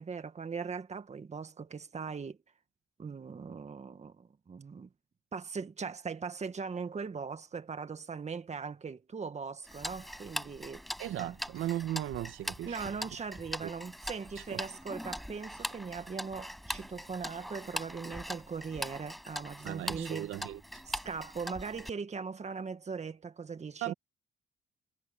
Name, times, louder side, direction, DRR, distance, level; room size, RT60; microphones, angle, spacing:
voice 1, 0.0-2.4 3.0-4.9 5.3-10.8 11.2-11.4 12.7-20.3 20.8-23.9, right 5 dB, 35° right, 1.8 m, -40 dB
Tick-tock, 9.7-21.9, equal, ahead, 6.2 m, -41 dB
voice 2, 11.0-12.8 13.6-13.7 19.7-20.6 23.8-23.9, right 13 dB, 85° right, 1.8 m, -36 dB
cardioid pair, 90°, 20 cm